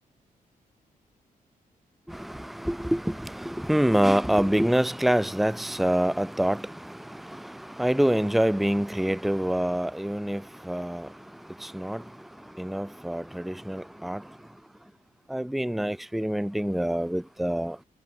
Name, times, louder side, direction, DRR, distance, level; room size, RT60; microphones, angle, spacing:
voice 1, 2.1-11.1 11.6-12.0 12.6-14.2 15.3-17.8, right 1 dB, ahead, 0.9 m, -26 dB
cardioid pair, 100°, 15 cm